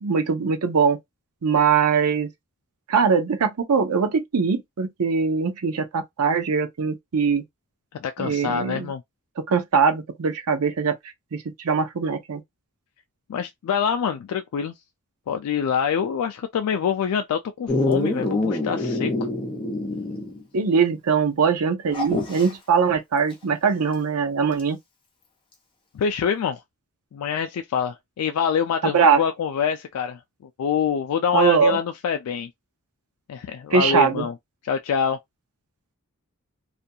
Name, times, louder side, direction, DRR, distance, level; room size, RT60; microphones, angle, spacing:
voice 1, 0.0-1.0 1.4-2.3 2.9-7.4 8.2-8.9 9.5-10.9 11.3-12.4 20.5-24.8 28.9-29.2 31.3-31.8 33.7-34.3, right 6 dB, 80° right, 0.5 m, -21 dB
voice 2, 8.0-9.0 13.3-14.7 15.3-19.1 25.9-26.6 27.1-30.2 30.6-32.5 33.3-34.3 34.6-35.2, left 7 dB, 80° left, 0.3 m, -25 dB
Dog, 17.7-20.4 20.7-20.8 21.9-22.5 24.6-24.7, left 2 dB, 25° left, 0.7 m, -25 dB
2.4 x 2.2 x 2.6 m
head